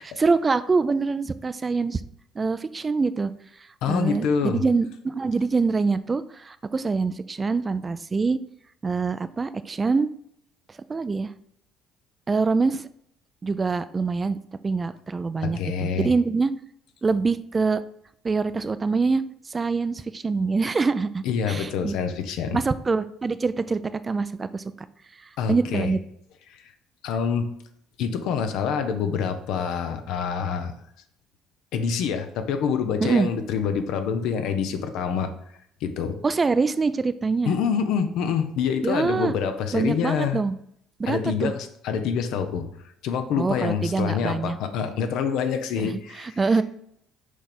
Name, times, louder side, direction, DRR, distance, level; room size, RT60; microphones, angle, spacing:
voice 1, 0.0-2.0 2.4-3.3 3.9-8.4 8.8-10.1 10.9-11.3 12.3-12.9 13.4-14.4 14.6-16.5 17.0-17.8 18.2-22.0 22.5-24.9 25.2-26.0 33.0-33.3 36.2-37.5 38.8-39.3 39.7-40.6 41.0-41.5 43.4-44.6 45.8-46.6, right 4 dB, 25° right, 14 dB, 0.4 m, -25 dB
voice 2, 3.8-4.6 15.4-16.1 21.2-22.6 25.4-25.9 26.5-26.6 27.0-27.5 28.0-30.7 31.7-35.3 35.8-36.2 37.4-40.4 41.1-42.7 43.0-46.4, left 7 dB, 75° left, 8 dB, 0.8 m, -26 dB
6.4 x 3.5 x 5.9 m, 0.71 s
cardioid pair, 110°, 0 cm